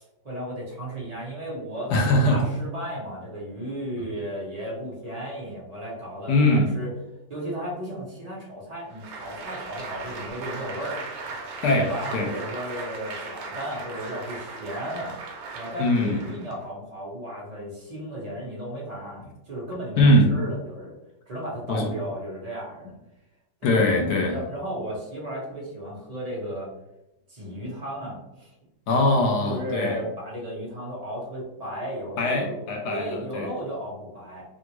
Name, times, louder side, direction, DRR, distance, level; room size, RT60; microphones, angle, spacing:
voice 1, 0.0-6.9 7.3-11.0 11.8-15.1 15.5-21.0 21.3-22.9 23.6-23.8 24.3-26.7 27.3-28.5 29.4-34.4, equal, 30° right, -5 dB, 0.8 m, -34 dB
voice 2, 1.9-2.4 6.3-6.7 11.6-12.3 15.8-16.2 20.0-20.6 21.7-21.9 23.6-24.4 28.9-30.0 32.2-33.5, left 1 dB, 75° left, 1 dB, 1.2 m, -21 dB
Applause, 8.9-16.6, right 4 dB, 70° right, 1.0 m, -38 dB
3.4 x 2.4 x 2.9 m, 0.89 s
omnidirectional pair, 1.8 m